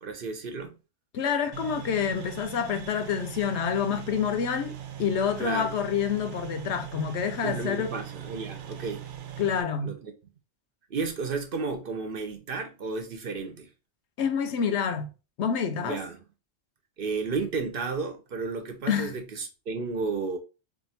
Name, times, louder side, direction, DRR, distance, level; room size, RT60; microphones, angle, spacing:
voice 1, 0.0-0.8 5.4-5.7 7.4-9.0 9.8-10.1 10.9-13.7 15.8-16.2 17.0-20.4, right 4 dB, 55° right, 0.8 m, -32 dB
voice 2, 1.1-7.9 9.4-9.9 14.2-15.1 15.4-16.0 18.9-19.1, left 7 dB, 80° left, 0.9 m, -28 dB
sound 1, 1.5-9.6, right 10 dB, 90° right, 0.9 m, -41 dB
2.8 x 2.5 x 4.1 m
omnidirectional pair, 1.2 m